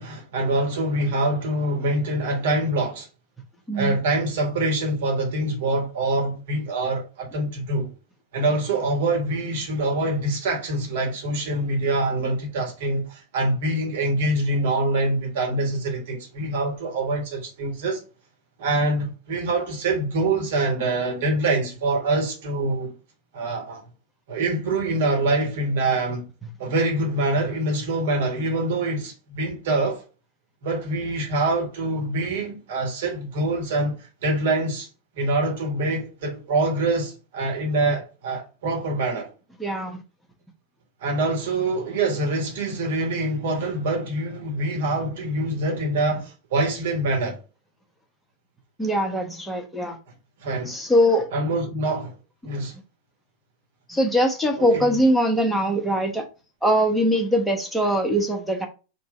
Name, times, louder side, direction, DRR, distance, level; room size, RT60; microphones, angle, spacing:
voice 1, 0.0-3.1 3.7-7.9 8.3-18.0 18.6-22.9 23.3-23.8 24.3-26.3 26.6-30.0 30.6-34.9 35.1-39.3 41.0-47.4 50.4-50.8 51.3-52.1 52.4-52.7 54.6-54.9, right 2 dB, 55° right, 1.5 m, -25 dB
voice 2, 39.6-40.0 48.8-50.0 50.7-51.3 53.9-56.2 56.6-58.7, equal, 5° left, 0.9 m, -22 dB
3.6 x 2.6 x 4.3 m
figure-of-eight pair, 90°, 0 cm